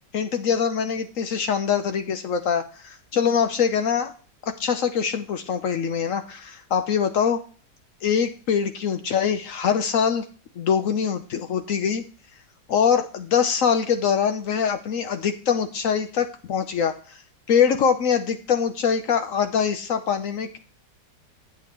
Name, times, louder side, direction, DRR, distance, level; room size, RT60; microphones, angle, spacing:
voice 1, 0.1-4.1 4.6-7.4 8.0-10.2 10.6-12.0 12.7-17.2 17.5-20.6, left 7 dB, 60° left, 8 dB, 0.9 m, -23 dB
8.6 x 7.9 x 3.0 m, 0.39 s
omnidirectional pair, 1.9 m